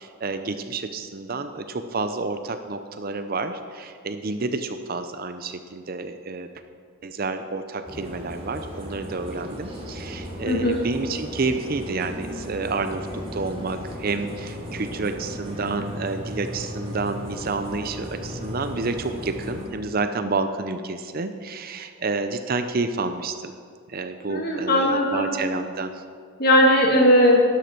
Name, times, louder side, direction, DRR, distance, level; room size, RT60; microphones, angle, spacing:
voice 1, 0.0-6.5 7.0-13.1 13.3-23.5 23.9-26.0, right 3 dB, 45° right, 9 dB, 0.6 m, -29 dB
sound 1, 7.9-19.6, equal, 30° right, 2.8 m, -36 dB
voice 2, 10.5-10.8 24.3-25.3 26.4-27.4, left 1 dB, 45° left, -1 dB, 2.1 m, -18 dB
12.0 x 11.5 x 4.5 m, 2.1 s
head